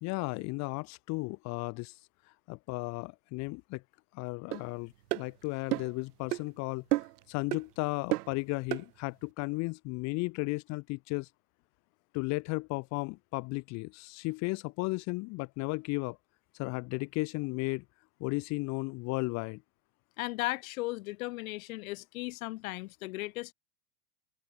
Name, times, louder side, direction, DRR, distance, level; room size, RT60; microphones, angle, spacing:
voice 1, 0.0-1.9 2.5-3.8 4.1-6.8 7.3-11.3 12.1-16.2 16.6-17.8 18.2-19.6, left 26 dB, 35° left, 0.7 m, -34 dB
sound 1, 4.5-4.6 5.1-5.3 5.7-6.0 6.3-6.5 6.9-7.2 7.5-7.7 8.1-8.4 8.7-8.9, right 18 dB, 80° right, 0.7 m, -31 dB
voice 2, 20.2-23.5, left 21 dB, 65° left, 3.7 m, -36 dB
supercardioid pair, 125°, 46 cm